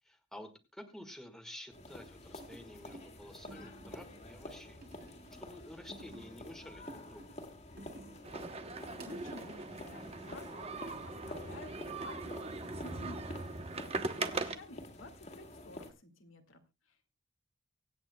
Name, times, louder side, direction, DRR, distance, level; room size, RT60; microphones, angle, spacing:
voice 1, 0.0-4.8 5.3-7.3, left 1 dB, 5° left, 5 dB, 1.6 m, -51 dB
sound 1, 1.7-15.9, left 1 dB, 35° left, 2.1 m, -49 dB
sound 2, 2.4-3.1 3.5-4.2 4.8-5.5 5.9-6.4 6.9-8.3 8.6-10.0 11.6-12.0 12.5-13.6 13.9-14.4, right 1 dB, 50° right, 3.1 m, -52 dB
sound 3, 8.2-14.6, right 3 dB, 30° right, 0.9 m, -40 dB
voice 2, 8.9-10.8 11.1-17.2, left 1 dB, 85° left, 5 dB, 2.0 m, -53 dB
24.5 x 8.8 x 2.2 m, 0.25 s
head